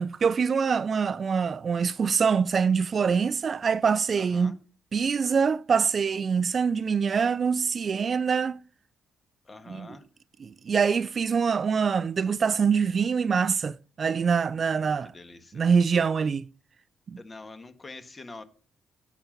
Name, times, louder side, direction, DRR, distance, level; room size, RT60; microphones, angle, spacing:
voice 1, 0.0-4.6 4.9-8.6 9.7-9.9 10.4-15.1 15.5-16.4 17.1-17.2, right 6 dB, 45° right, 0.4 m, -24 dB
voice 2, 4.2-4.6 9.4-10.0 14.6-15.6 17.2-18.4, left 3 dB, 25° left, 1.5 m, -45 dB
10.0 x 5.9 x 5.3 m
cardioid pair, 90°, 0 cm